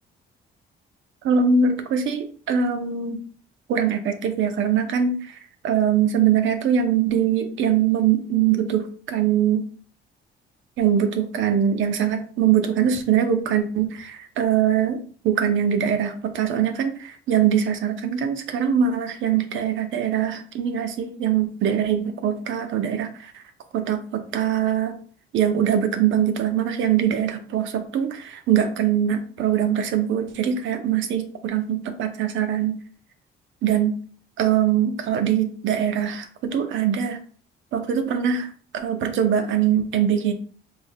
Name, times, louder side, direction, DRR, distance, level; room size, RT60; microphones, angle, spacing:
voice 1, 1.2-3.2 3.7-5.4 5.6-9.6 10.8-23.3 23.7-25.0 25.3-32.7 33.6-33.9 34.4-37.2 37.7-38.5 38.7-40.3, right 8 dB, 70° right, 7 dB, 0.6 m, -22 dB
3.6 x 3.3 x 2.2 m, 0.44 s
cardioid pair, 110°, 21 cm